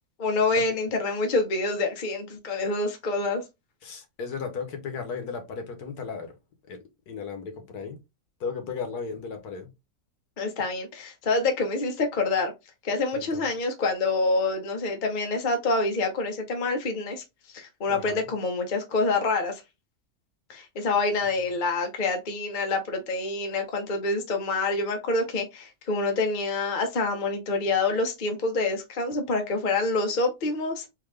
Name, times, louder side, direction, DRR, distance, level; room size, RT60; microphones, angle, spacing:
voice 1, 0.2-3.4 10.4-12.5 12.8-19.6 20.5-30.9, left 3 dB, 40° left, 0.8 m, -27 dB
voice 2, 3.8-6.3 6.7-6.8 7.1-8.0 8.4-9.7 13.1-13.5 17.9-18.2, left 5 dB, 75° left, 1.5 m, -35 dB
3.8 x 2.8 x 3.3 m
omnidirectional pair, 1.7 m